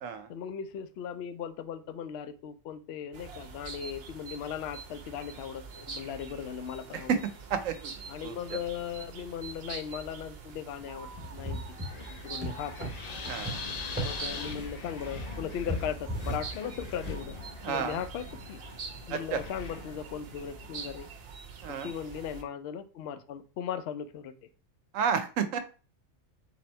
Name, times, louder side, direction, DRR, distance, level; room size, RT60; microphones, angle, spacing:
voice 1, 0.3-7.1 8.1-11.6 11.9-12.9 14.0-17.4 17.7-18.6 19.1-21.1 21.8-24.5, left 8 dB, 65° left, 9 dB, 0.7 m, -38 dB
sound 1, 3.1-22.4, right 5 dB, 55° right, 0.9 m, -45 dB
voice 2, 7.5-8.0 8.2-8.3 13.3-13.6 17.6-18.0 19.1-19.4 21.6-21.9 24.9-25.6, right 7 dB, 75° right, 9 dB, 1.0 m, -30 dB
Wind, 10.8-20.9, left 4 dB, 90° left, 0.3 m, -43 dB
sound 2, 11.1-17.1, equal, 10° right, 0.9 m, -38 dB
3.9 x 2.9 x 4.3 m, 0.36 s
omnidirectional pair, 1.4 m